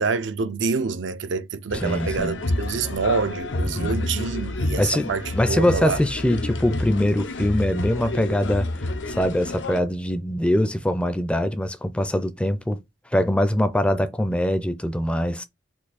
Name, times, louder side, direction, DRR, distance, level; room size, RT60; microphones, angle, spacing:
voice 1, 0.0-6.0, right 4 dB, 75° right, 0.5 m, -27 dB
sound 1, 1.7-9.8, left 2 dB, 80° left, 0.7 m, -29 dB
voice 2, 1.8-2.4 3.7-4.0 4.8-8.7 9.1-12.8 13.1-15.4, left 1 dB, 5° left, 0.4 m, -23 dB
4.4 x 2.6 x 4.1 m
head